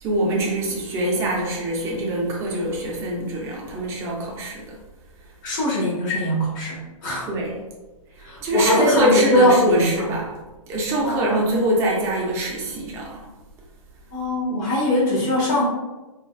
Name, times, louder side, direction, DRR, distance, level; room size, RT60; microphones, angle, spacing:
voice 1, 0.0-4.8 7.3-7.5 8.4-10.3 10.7-13.2, right 1 dB, 15° right, -2 dB, 0.4 m, -24 dB
voice 2, 5.4-7.3 8.2-10.1 11.0-11.6 14.1-15.6, left 1 dB, 35° left, -4 dB, 1.1 m, -21 dB
3.8 x 2.3 x 2.3 m, 1.1 s
hypercardioid pair, 155°, 18 cm